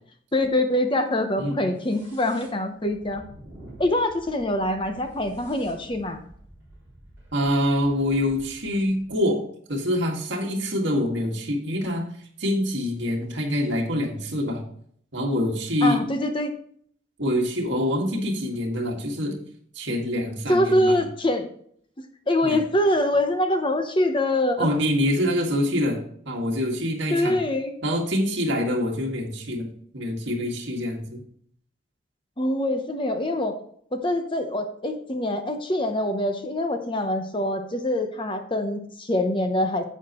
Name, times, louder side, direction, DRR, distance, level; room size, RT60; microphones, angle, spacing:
voice 1, 0.3-3.2 3.8-6.2 15.8-16.5 20.5-21.5 22.3-24.7 27.1-27.7 32.4-33.6 33.9-39.8, left 1 dB, 25° left, 6 dB, 0.8 m, -24 dB
sound 1, 1.7-9.3, right 1 dB, 10° right, 4.3 m, -49 dB
voice 2, 7.3-9.4 9.7-12.0 12.4-14.6 15.1-16.0 17.2-19.4 19.7-21.0 22.4-22.6 24.6-26.0 26.3-27.4 27.8-29.7 29.9-31.2, left 1 dB, 60° right, 1 dB, 2.0 m, -25 dB
10.5 x 8.0 x 3.0 m, 0.62 s
head